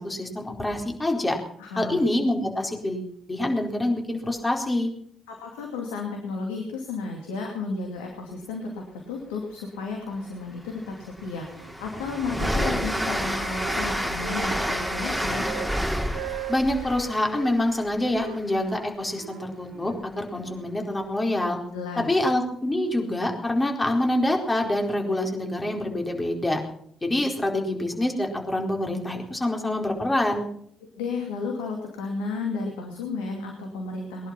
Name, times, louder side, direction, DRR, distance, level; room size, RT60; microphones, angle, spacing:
voice 1, 0.0-1.4 1.8-4.9 16.5-21.6 22.0-26.6 27.0-30.4, left 1 dB, 20° left, 2 dB, 4.4 m, -26 dB
voice 2, 1.6-2.1 5.3-15.5 21.7-22.1 30.8-34.3, left 4 dB, 85° left, 1 dB, 2.5 m, -33 dB
Train, 10.2-10.3 10.8-18.5, equal, ahead, 3.5 m, -29 dB
Wind instrument woodwind instrument, 11.5-12.3 12.7-15.7 16.1-17.6 18.1-20.6, right 14 dB, 80° right, 1.0 m, -40 dB
21.0 x 11.0 x 5.9 m, 0.65 s
hypercardioid pair, 50°, 0 cm